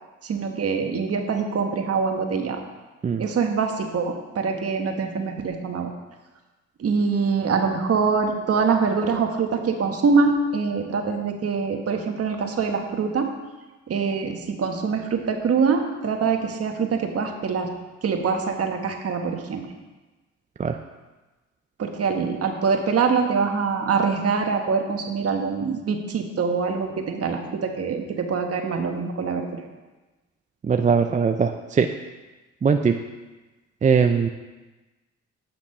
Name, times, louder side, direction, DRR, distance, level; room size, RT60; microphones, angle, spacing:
voice 1, 0.2-2.6 3.2-5.9 6.8-13.3 13.9-17.7 18.0-19.6 21.8-29.6, right 5 dB, 50° right, 3 dB, 1.3 m, -24 dB
voice 2, 30.6-31.9 32.6-33.0 33.8-34.3, right 6 dB, 25° right, 6 dB, 0.4 m, -20 dB
8.7 x 5.9 x 5.5 m, 1.2 s
cardioid pair, 90°, 30 cm